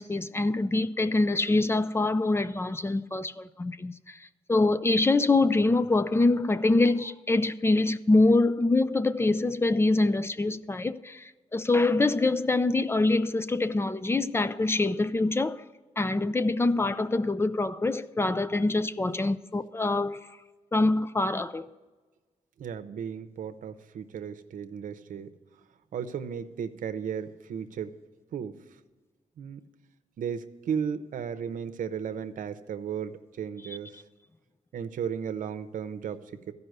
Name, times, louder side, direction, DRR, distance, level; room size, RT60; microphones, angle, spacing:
voice 1, 0.0-15.6 16.0-20.4 20.7-21.7, left 2 dB, 20° left, 0.4 m, -25 dB
voice 2, 22.6-25.3 25.9-28.0 28.3-28.6 29.4-29.6 30.2-34.0 34.7-36.5, right 7 dB, 85° right, 0.7 m, -35 dB
14.0 x 5.5 x 7.9 m
wide cardioid pair, 110°, 13 cm